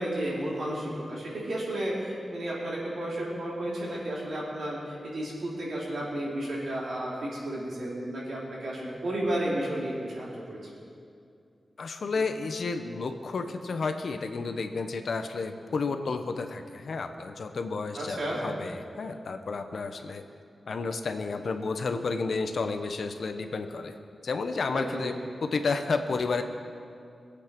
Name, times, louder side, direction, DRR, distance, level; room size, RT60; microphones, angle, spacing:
voice 1, 0.0-10.6 17.9-18.4 24.7-25.1, right 1 dB, 80° right, -7 dB, 4.9 m, -32 dB
voice 2, 11.8-20.2 20.7-23.9 24.2-25.2 25.4-26.4, left 4 dB, 65° left, 7 dB, 1.0 m, -31 dB
23.5 x 8.3 x 6.0 m, 2.4 s
wide cardioid pair, 160°, 0 cm